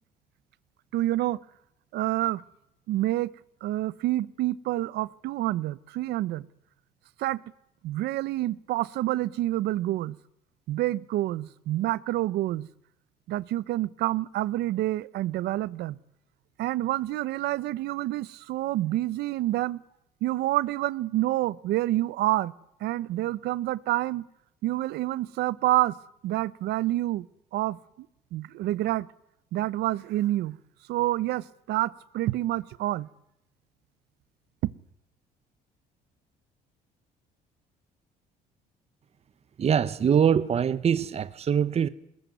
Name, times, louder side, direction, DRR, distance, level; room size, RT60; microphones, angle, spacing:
voice 1, 0.9-1.4 1.9-2.4 2.9-3.3 3.6-6.5 7.2-7.4 7.8-10.2 10.7-12.7 13.3-16.0 16.6-19.8 20.2-22.5 22.8-24.2 24.6-26.0 26.2-27.3 27.5-27.8 28.3-29.1 29.5-30.6 30.9-33.1 34.6-34.7, right 15 dB, 80° right, 0.9 m, -28 dB
voice 2, 39.6-41.9, right 8 dB, 40° right, 1.0 m, -23 dB
21.5 x 20.0 x 9.3 m
cardioid pair, 110°, 17 cm